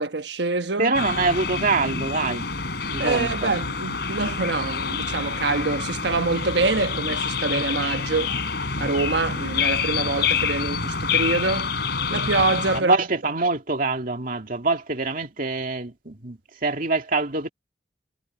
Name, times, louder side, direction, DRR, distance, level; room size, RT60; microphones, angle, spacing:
voice 1, 0.0-0.9 3.0-8.3 8.8-11.7 12.1-13.0, right 3 dB, 70° right, 1.2 m, -25 dB
voice 2, 0.8-2.4 2.9-3.6 12.7-17.5, right 3 dB, 50° right, 2.5 m, -25 dB
sound 1, 0.9-12.8, left 5 dB, 60° left, 5.5 m, -27 dB
head